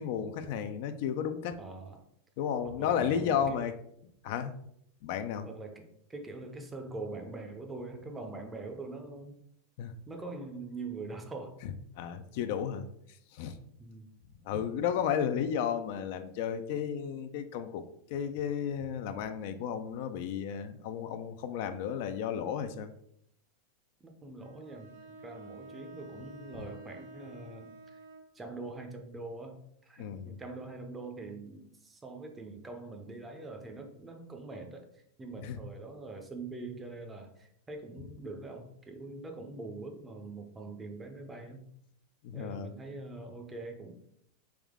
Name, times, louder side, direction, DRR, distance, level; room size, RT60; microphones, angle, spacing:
voice 1, 0.0-1.6 2.4-3.7 4.2-4.5 5.0-5.5 9.8-9.9 11.6-12.9 13.3-13.6 14.5-17.8 18.1-22.9 30.0-30.4 35.4-35.6 42.2-42.7, left 8 dB, 60° left, 9 dB, 0.4 m, -33 dB
voice 2, 1.6-2.1 2.6-3.7 5.4-5.8 6.1-9.4 10.1-11.6 13.8-14.1 24.0-24.9 25.2-28.0 28.3-41.7 42.3-43.9, right 3 dB, 15° right, 5 dB, 0.6 m, -43 dB
Bowed string instrument, 24.4-28.4, right 2 dB, 65° right, 1.5 m, -50 dB
3.5 x 3.0 x 3.5 m, 0.71 s
supercardioid pair, 130°, 0 cm